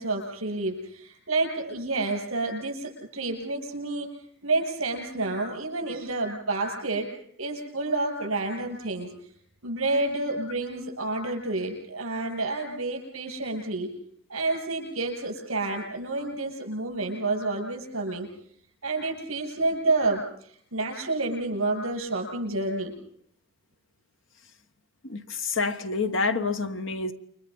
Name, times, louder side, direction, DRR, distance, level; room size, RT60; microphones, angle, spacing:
voice 1, 0.0-4.1 4.4-7.1 7.4-9.1 9.6-13.9 14.3-18.3 18.8-22.9, right 2 dB, 70° right, 7.6 m, -29 dB
voice 2, 25.0-27.1, left 4 dB, 60° left, 1.3 m, -28 dB
29.0 x 24.0 x 5.5 m
head